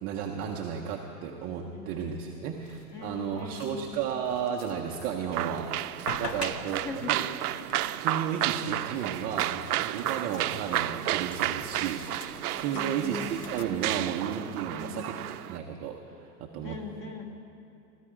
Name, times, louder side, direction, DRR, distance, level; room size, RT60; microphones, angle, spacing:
voice 1, 0.0-7.2 8.0-16.8, right 8 dB, 20° right, 0 dB, 0.5 m, -33 dB
voice 2, 1.7-2.6 2.9-3.9 6.3-7.5 12.7-13.5 14.7-15.1 16.6-17.3, left 3 dB, 25° left, 3 dB, 1.5 m, -41 dB
sound 1, 2.5-13.7, left 5 dB, 75° left, 1.3 m, -46 dB
sound 2, 5.3-15.6, right 14 dB, 70° right, 0.5 m, -32 dB
17.5 x 13.5 x 4.9 m, 2.7 s
hypercardioid pair, 135°, 47 cm